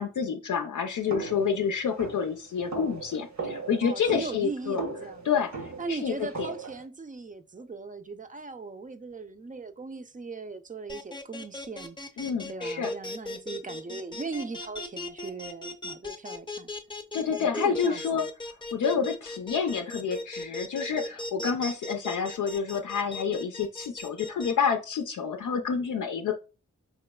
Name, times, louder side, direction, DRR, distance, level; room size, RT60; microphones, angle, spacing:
voice 1, 0.0-4.8 5.2-5.5 5.9-6.5 12.2-12.9 17.1-18.3 18.7-26.3, left 6 dB, 75° left, 0.5 m, -28 dB
sound 1, 1.1-6.9, right 3 dB, 65° right, 1.0 m, -38 dB
voice 2, 3.8-5.3 5.8-12.0 12.5-16.7 17.4-18.2 18.9-19.1, right 4 dB, 25° right, 0.5 m, -39 dB
sound 2, 10.9-24.5, left 2 dB, 15° left, 0.7 m, -37 dB
4.8 x 3.0 x 2.2 m
cardioid pair, 40°, 31 cm